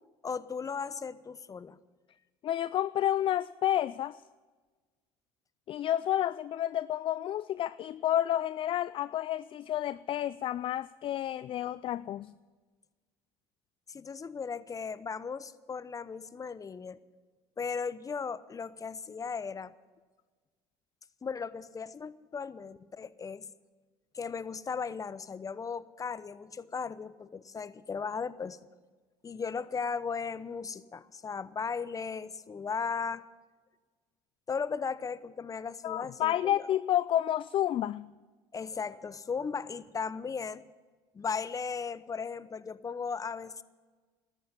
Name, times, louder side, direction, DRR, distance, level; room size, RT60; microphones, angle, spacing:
voice 1, 0.2-1.8 13.9-17.0 17.6-19.7 21.2-23.5 24.1-28.6 29.2-33.2 34.5-36.7 38.5-40.7 41.1-43.6, left 5 dB, 25° left, 16 dB, 0.8 m, -36 dB
voice 2, 2.4-4.2 5.7-12.3 35.8-38.1, left 12 dB, 40° left, 17 dB, 0.4 m, -30 dB
13.0 x 10.0 x 9.1 m, 1.3 s
hypercardioid pair, 70°, 13 cm